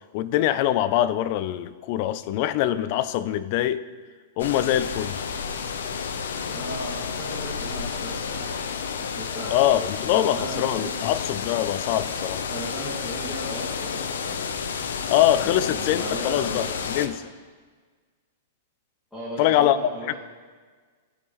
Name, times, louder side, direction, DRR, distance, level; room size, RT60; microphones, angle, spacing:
voice 1, 0.1-3.8 4.4-5.2 9.5-12.4 15.1-16.7 16.9-17.2 19.4-19.8 20.1-20.2, left 12 dB, 45° left, 0.4 m, -23 dB
sound 1, 4.4-17.1, left 6 dB, 85° left, 0.6 m, -31 dB
voice 2, 6.5-8.5 8.9-9.5 10.0-11.0 12.5-14.4 15.4-16.6 19.1-20.1, equal, 5° left, 2.2 m, -36 dB
16.0 x 5.4 x 3.1 m
supercardioid pair, 155°, 0 cm